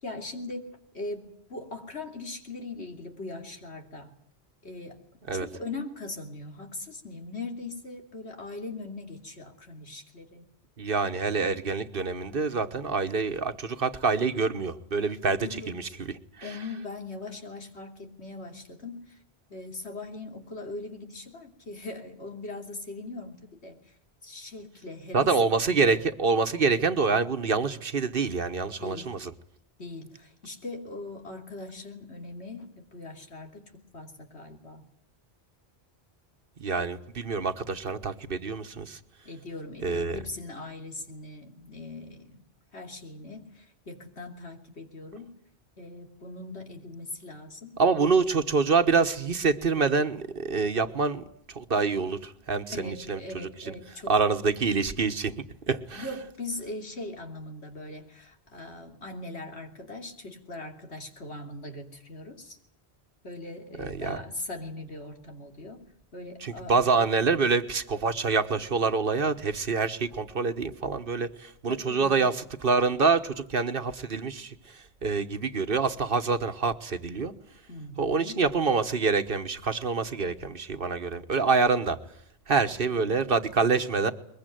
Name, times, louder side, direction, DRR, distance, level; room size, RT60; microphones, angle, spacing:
voice 1, 0.0-4.1 4.6-5.0 5.3-10.5 15.4-15.9 16.4-19.2 19.5-23.8 24.2-25.4 25.8-26.0 28.8-29.1 29.8-34.9 39.2-42.4 42.7-45.3 45.8-47.8 52.7-54.2 55.9-62.6 63.2-65.8 66.1-66.8 71.7-72.2 77.7-78.4 82.6-83.1, left 2 dB, 85° left, 4 dB, 3.3 m, -40 dB
voice 2, 10.8-16.1 16.4-16.5 25.1-29.3 36.6-39.0 39.8-40.2 47.8-51.2 51.5-53.2 53.7-53.8 54.1-55.3 55.7-56.0 63.8-64.2 66.4-74.5 75.0-77.3 78.0-82.0 82.5-84.1, right 4 dB, 60° right, 9 dB, 1.4 m, -26 dB
22.0 x 22.0 x 9.2 m, 0.66 s
omnidirectional pair, 1.1 m